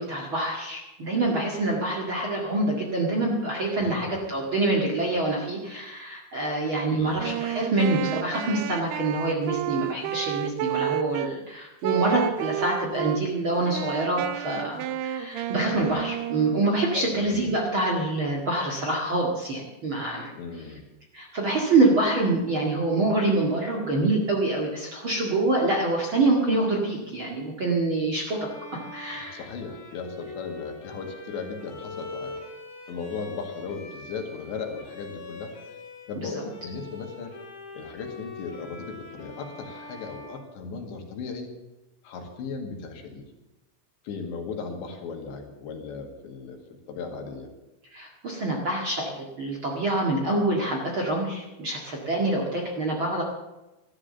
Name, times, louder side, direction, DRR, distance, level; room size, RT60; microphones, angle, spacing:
voice 1, 0.0-20.3 21.1-28.5 28.9-29.5 36.2-36.4 47.9-53.2, right 2 dB, 40° right, -1 dB, 1.9 m, -26 dB
voice 2, 3.8-4.2 6.9-7.3 15.7-16.0 16.9-17.5 20.4-20.8 29.3-32.4 32.9-35.5 36.1-37.3 37.7-41.5 42.0-43.3 44.1-46.6 46.9-47.5, left 5 dB, 85° left, 2 dB, 4.4 m, -37 dB
Wind instrument woodwind instrument, 7.1-11.3 11.8-13.2 13.6-16.9, right 12 dB, 80° right, 2.6 m, -31 dB
Bowed string instrument, 28.3-36.2 36.5-41.2, left 3 dB, 55° left, 4.5 m, -43 dB
14.0 x 12.5 x 6.9 m, 1.0 s
omnidirectional pair, 5.0 m